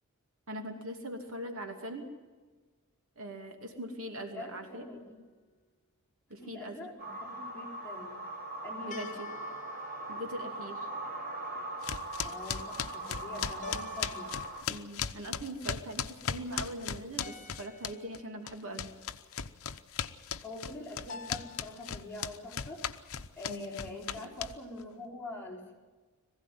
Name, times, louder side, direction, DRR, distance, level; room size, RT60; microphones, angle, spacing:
voice 1, 0.5-2.1 3.2-4.9 6.3-6.9 8.8-9.3 10.1-10.9 14.7-18.9 23.5-24.3, right 1 dB, 65° right, 4 dB, 2.7 m, -41 dB
voice 2, 4.3-5.2 6.4-8.2 8.6-9.1 12.2-14.3 14.7-14.8 20.4-22.8 23.1-25.8, left 2 dB, 10° left, -3 dB, 4.6 m, -44 dB
sound 1, 4.5-5.2 8.9-10.9 13.6-15.0 17.2-18.4 21.1-22.1, left 4 dB, 35° left, 1.3 m, -50 dB
sound 2, 7.0-14.6, right 1 dB, 45° right, 3.7 m, -40 dB
sound 3, 11.8-18.2 18.5-24.8, left 8 dB, 65° left, 0.8 m, -37 dB
21.0 x 15.5 x 9.4 m, 1.4 s
head